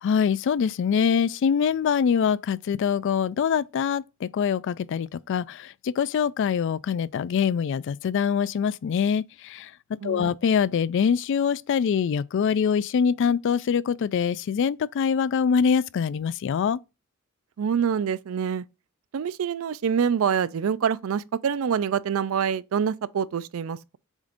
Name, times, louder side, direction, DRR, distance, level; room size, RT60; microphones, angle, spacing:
voice 1, 0.0-9.7 10.0-16.8, left 7 dB, 60° left, 0.3 m, -24 dB
voice 2, 10.0-10.3 17.6-18.6 19.1-24.0, right 7 dB, 75° right, 0.4 m, -26 dB
7.2 x 2.5 x 5.1 m
head